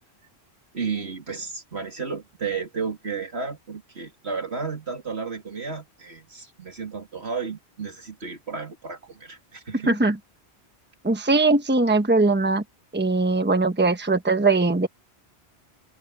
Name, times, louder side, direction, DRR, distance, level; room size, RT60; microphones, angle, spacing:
voice 1, 0.7-10.0, right 5 dB, 80° right, 3.1 m, -33 dB
voice 2, 11.0-12.6 12.9-14.9, right 3 dB, 10° right, 1.1 m, -20 dB
omnidirectional pair, 1.1 m